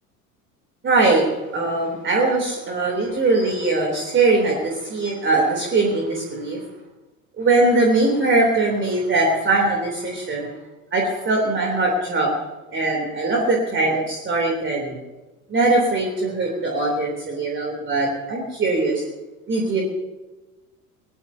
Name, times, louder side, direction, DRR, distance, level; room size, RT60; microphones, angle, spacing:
voice 1, 0.8-1.2 1.5-6.6 7.4-10.5 10.9-12.3 12.7-15.0 15.5-19.0 19.5-19.8, right 2 dB, 25° right, 0 dB, 3.3 m, -21 dB
21.5 x 19.0 x 2.8 m, 1.1 s
figure-of-eight pair, 75°, 45 cm